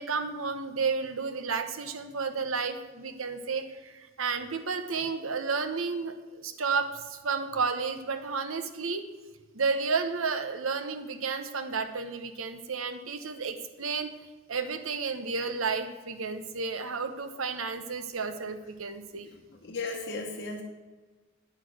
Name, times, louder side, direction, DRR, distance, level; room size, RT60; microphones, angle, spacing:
voice 1, 0.0-9.0 9.5-14.1 14.5-19.3, right 5 dB, 80° right, 8 dB, 1.0 m, -32 dB
voice 2, 19.6-20.6, left 3 dB, 55° left, 0 dB, 1.1 m, -35 dB
9.7 x 6.3 x 7.8 m, 1.3 s
head